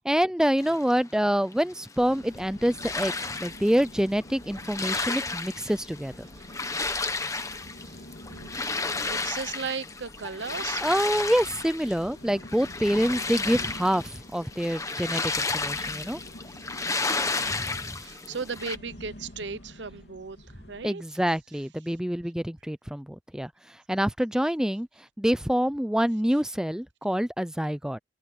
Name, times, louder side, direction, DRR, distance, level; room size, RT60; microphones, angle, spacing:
voice 1, 0.0-3.1 3.4-6.3 10.8-16.2 17.5-18.0 20.8-23.5 23.9-24.9 25.2-28.0, equal, 5° right, 0.5 m, -26 dB
sound 1, 0.6-18.8, left 3 dB, 15° left, 1.2 m, -33 dB
sound 2, 2.0-20.9, left 1 dB, 60° left, 3.2 m, -48 dB
voice 2, 7.5-10.8 16.0-16.1 16.5-16.6 17.3-21.0 21.5-21.6, right 5 dB, 65° right, 0.9 m, -38 dB
head